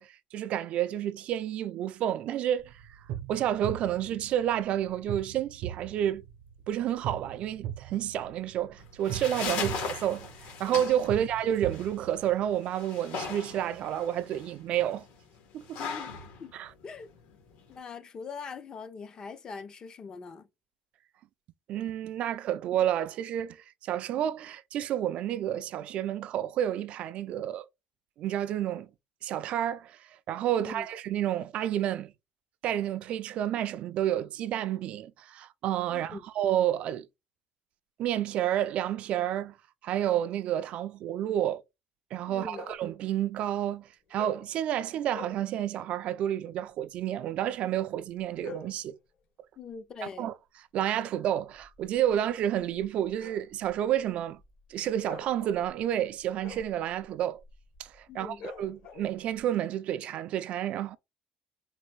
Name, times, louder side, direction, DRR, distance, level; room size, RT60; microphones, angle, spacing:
voice 1, 0.0-3.0 3.3-6.2 6.7-10.3 10.6-15.0 15.5-15.8 16.5-16.7 21.7-27.7 28.2-28.9 29.2-32.1 32.6-37.1 38.0-39.5 39.8-41.6 42.1-49.0 50.2-50.3 50.7-54.4 54.7-57.4 57.8-61.0, right 11 dB, 50° right, 0.3 m, -30 dB
sound 1, 2.6-12.5, right 11 dB, 85° right, 0.7 m, -41 dB
sound 2, 8.8-17.8, left 6 dB, 70° left, 1.8 m, -39 dB
voice 2, 15.8-16.1 16.4-16.5 16.8-17.1 17.7-20.5 30.6-30.9 35.9-36.2 42.3-42.7 49.6-50.3 58.1-58.4, left 5 dB, 30° left, 0.5 m, -42 dB
sound 3, 42.5-42.9 44.1-44.5 45.1-45.5 48.1-48.8 51.4-59.4, left 5 dB, 55° left, 1.4 m, -48 dB
4.0 x 2.6 x 3.1 m
cardioid pair, 155°, 3 cm